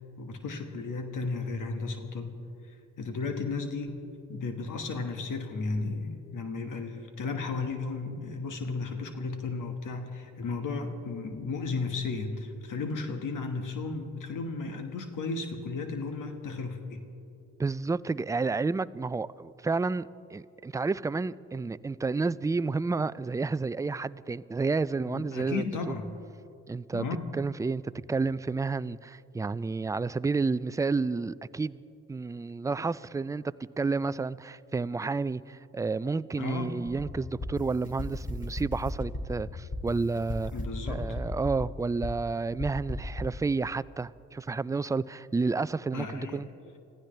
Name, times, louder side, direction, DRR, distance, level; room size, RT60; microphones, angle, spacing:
voice 1, 0.2-2.3 3.0-17.0 25.1-26.1 26.9-27.3 36.4-36.8 40.5-41.1 45.9-46.4, left 4 dB, 60° left, 1.6 m, -34 dB
voice 2, 17.6-26.0 26.7-27.1 27.3-31.8 32.1-33.4 33.8-40.5 40.9-46.5, right 4 dB, 10° right, 0.3 m, -30 dB
sound 1, 36.9-42.2 42.6-43.2, left 1 dB, 25° left, 2.4 m, -35 dB
26.0 x 15.0 x 3.3 m
hypercardioid pair, 45°, 35 cm